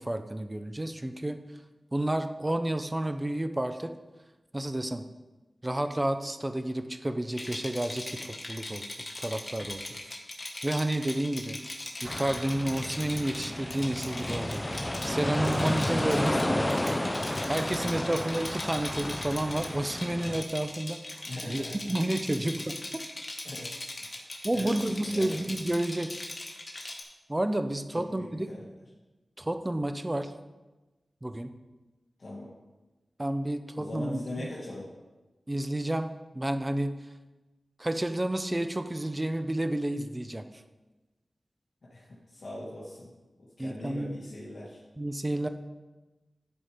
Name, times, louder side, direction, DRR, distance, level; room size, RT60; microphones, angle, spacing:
voice 1, 0.0-1.4 1.9-3.9 4.5-5.0 5.6-8.9 9.2-10.0 10.6-11.6 12.0-16.7 17.5-23.0 24.4-26.2 27.3-28.5 29.4-30.3 31.2-31.5 33.2-34.5 35.5-36.9 37.8-40.4 43.6-44.2 45.0-45.5, right 1 dB, 25° right, 8 dB, 0.8 m, -31 dB
Rattle, 7.3-27.0, left 2 dB, 50° left, 1.6 m, -40 dB
sound 1, 12.1-20.4, left 1 dB, 20° left, 0.6 m, -32 dB
voice 2, 21.3-21.7 22.4-22.6 23.4-23.7 24.0-25.4 28.0-28.6 32.2-32.5 33.7-34.9 41.9-43.1 43.4-44.8, left 1 dB, 70° left, -6 dB, 1.9 m, -41 dB
11.5 x 4.9 x 5.1 m, 1.1 s
cardioid pair, 45°, 0 cm